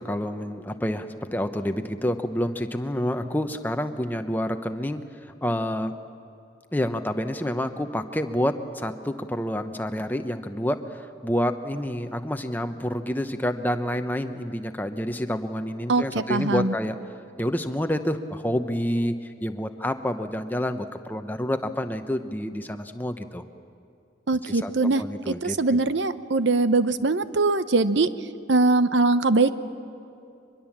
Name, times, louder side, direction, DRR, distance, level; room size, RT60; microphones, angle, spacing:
voice 1, 0.0-5.9 6.7-16.9 17.4-23.4 24.5-25.8, equal, 10° left, 7 dB, 0.8 m, -28 dB
voice 2, 15.9-16.7 24.3-28.1 28.5-29.5, right 3 dB, 75° right, 13 dB, 0.8 m, -22 dB
23.5 x 22.0 x 7.4 m, 2.6 s
head